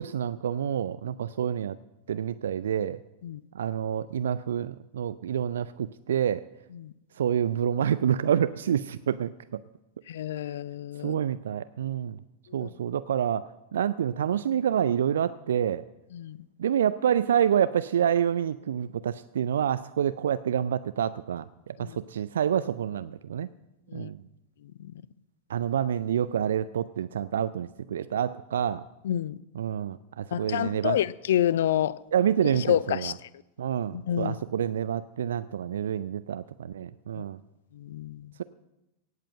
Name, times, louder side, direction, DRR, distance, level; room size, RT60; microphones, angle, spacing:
voice 1, 0.0-1.8 2.1-3.0 3.5-6.4 7.2-9.3 11.0-12.2 12.5-15.8 16.6-23.5 23.9-24.2 25.5-28.8 29.6-31.0 32.1-33.1 33.6-37.4, right 9 dB, 65° right, 0.4 m, -27 dB
voice 2, 10.1-11.2 12.5-12.7 16.1-16.4 21.8-22.0 23.9-24.1 24.8-24.9 29.0-29.4 30.3-32.0 32.5-33.1 33.9-34.3 37.2-37.3 37.7-38.3, left 11 dB, 60° left, 0.5 m, -28 dB
17.5 x 7.6 x 7.7 m
figure-of-eight pair, 90°, 0 cm